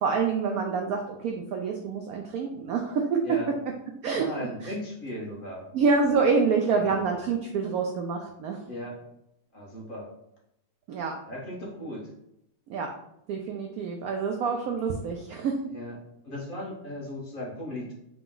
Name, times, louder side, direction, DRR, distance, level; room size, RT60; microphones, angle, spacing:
voice 1, 0.0-3.2 4.0-4.3 4.6-4.7 5.7-8.6 10.9-11.1 12.7-12.9 13.3-15.6, right 5 dB, 90° right, 2 dB, 0.7 m, -27 dB
voice 2, 4.1-5.7 6.7-6.9 8.7-9.0 9.5-10.1 11.2-12.1 15.7-16.0 16.2-17.9, left 1 dB, 35° left, -3 dB, 1.0 m, -37 dB
4.9 x 2.3 x 3.7 m, 0.81 s
omnidirectional pair, 2.1 m